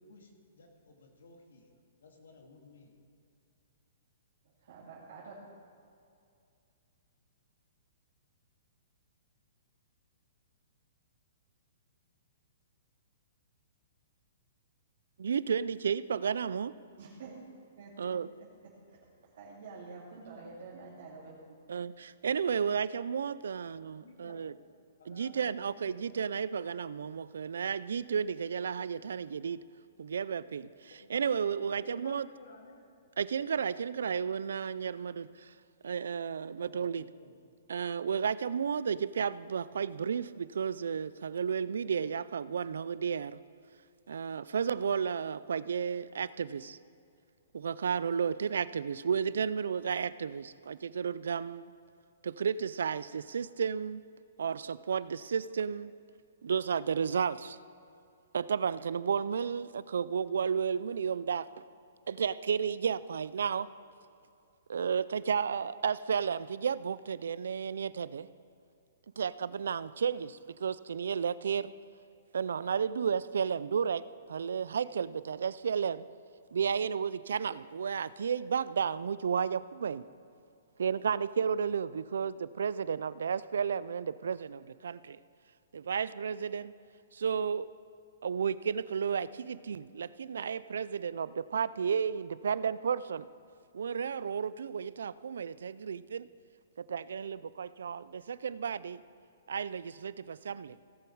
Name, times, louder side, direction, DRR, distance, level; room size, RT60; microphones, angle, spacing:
voice 1, 0.0-1.7 2.0-3.0 23.4-23.6 24.0-24.5 25.0-26.1 31.0-31.1 31.6-32.8 36.5-37.3, left 3 dB, 90° left, 2 dB, 2.1 m, -55 dB
voice 2, 4.6-5.4 17.0-17.4 17.8-18.2 18.6-19.0 19.3-21.6, right 4 dB, 60° right, -6 dB, 2.2 m, -48 dB
voice 3, 15.2-16.7 18.0-18.3 21.7-24.5 25.1-29.6 30.0-32.3 33.2-35.5 35.8-37.0 37.7-43.4 44.1-46.8 47.5-51.7 52.2-54.0 54.4-55.9 56.4-57.6 58.3-61.6 62.1-63.7 64.7-68.3 69.2-71.7 72.3-76.1 76.5-80.0 80.8-85.2 85.7-86.7 87.1-87.7 88.2-93.3 93.7-96.3 96.8-99.0 99.5-100.9, right 7 dB, 85° right, 18 dB, 0.3 m, -33 dB
17.0 x 7.0 x 4.6 m, 2.5 s
hypercardioid pair, 165°, 0 cm